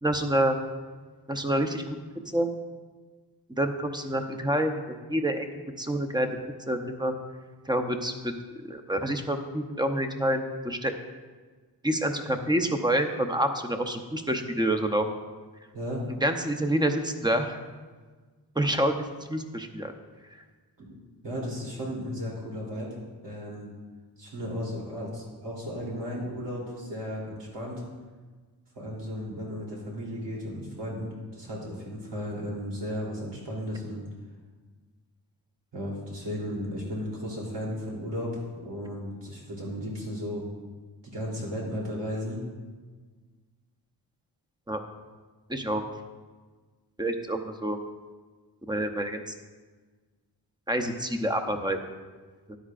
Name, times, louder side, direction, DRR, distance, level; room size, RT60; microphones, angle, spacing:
voice 1, 0.0-0.6 1.3-2.0 2.3-2.5 3.6-5.5 5.8-6.4 6.7-7.1 7.7-8.3 8.7-10.9 11.8-15.1 16.2-17.6 18.6-19.9 44.7-44.8 45.5-45.8 47.0-47.8 48.6-49.2 50.7-51.8 52.5-52.6, right 1 dB, 10° right, 6 dB, 0.7 m, -27 dB
voice 2, 15.7-16.0 20.8-21.0 21.2-23.0 23.2-23.7 24.2-27.8 28.7-34.0 35.7-40.4 41.0-42.4, equal, 85° right, -4 dB, 3.3 m, -35 dB
13.0 x 10.0 x 2.5 m, 1.4 s
wide cardioid pair, 100°, 41 cm